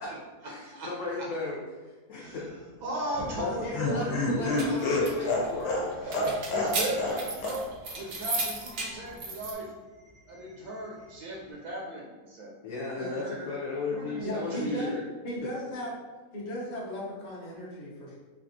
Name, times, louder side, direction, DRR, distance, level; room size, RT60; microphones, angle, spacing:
voice 1, 0.4-2.4 3.3-6.3 12.6-15.0, left 3 dB, 70° left, -4 dB, 0.9 m, -36 dB
voice 2, 2.8-4.6 6.0-7.6 8.0-9.7 10.3-12.5 12.9-13.5 13.9-14.9, right 1 dB, 85° right, -3 dB, 1.1 m, -36 dB
Laughter, 3.1-7.2 7.4-7.6 7.9-8.0, left 2 dB, 85° left, 1.2 m, -29 dB
sound 1, 4.3-9.5, right 2 dB, 65° right, 0.6 m, -35 dB
voice 3, 14.2-14.9 15.2-15.9 16.3-18.2, equal, 45° left, -5 dB, 0.6 m, -36 dB
3.3 x 2.3 x 2.6 m, 1.3 s
omnidirectional pair, 1.6 m